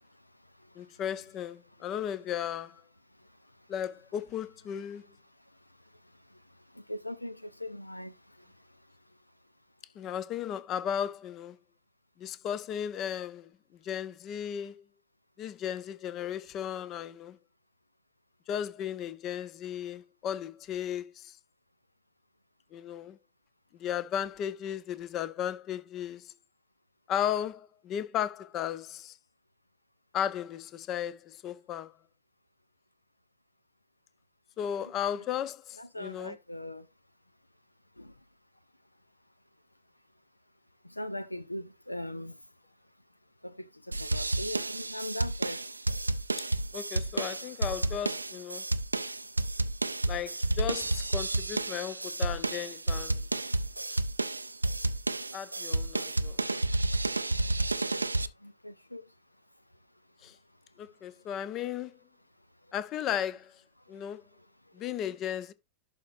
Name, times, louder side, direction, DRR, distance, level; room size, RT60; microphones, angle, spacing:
voice 1, 0.8-2.8 3.7-5.0 10.0-11.6 12.2-13.5 13.8-14.8 15.4-17.4 18.5-21.4 22.7-23.2 23.8-26.3 27.1-29.1 30.1-31.9 34.6-36.4 46.7-48.7 50.1-53.2 53.9-54.0 55.3-56.4 60.2-60.3 60.8-62.0 62.7-63.5 63.9-64.2 64.7-65.5, left 9 dB, 35° left, 0.6 m, -35 dB
voice 2, 6.3-8.6 35.8-36.9 38.0-38.1 40.8-42.4 43.4-45.7 58.4-59.0 64.0-64.1 64.4-64.5, left 1 dB, 85° left, 0.4 m, -41 dB
sound 1, 43.9-58.3, right 2 dB, 80° right, 0.4 m, -31 dB
11.5 x 4.2 x 2.6 m
figure-of-eight pair, 90°, 0 cm